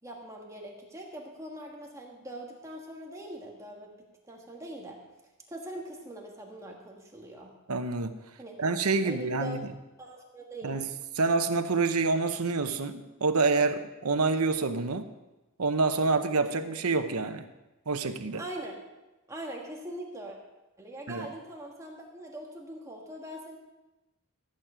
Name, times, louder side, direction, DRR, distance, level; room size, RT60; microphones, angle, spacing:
voice 1, 0.0-3.9 4.3-5.0 5.5-7.5 8.4-8.6 9.0-10.8 18.4-18.8 19.3-20.4 20.8-23.6, right 1 dB, 15° right, -1 dB, 1.5 m, -42 dB
voice 2, 7.7-8.2 8.6-9.6 10.6-10.8 11.2-15.1 15.6-17.5 17.9-18.4 21.1-21.3, right 3 dB, 80° right, 9 dB, 0.9 m, -27 dB
14.0 x 9.0 x 4.9 m, 1.0 s
head